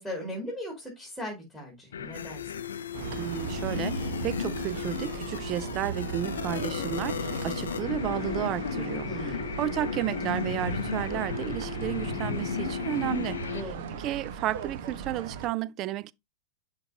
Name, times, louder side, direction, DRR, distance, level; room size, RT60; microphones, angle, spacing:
voice 1, 0.0-2.6 9.1-9.5 13.5-13.9, equal, ahead, 2.5 m, -38 dB
sound 1, 1.9-13.6, left 7 dB, 65° left, 0.5 m, -34 dB
sound 2, 2.9-15.5, right 6 dB, 55° right, 1.0 m, -37 dB
voice 2, 3.1-13.5 13.9-16.1, right 14 dB, 35° right, 0.3 m, -32 dB
11.0 x 3.7 x 2.7 m
figure-of-eight pair, 90°, 0 cm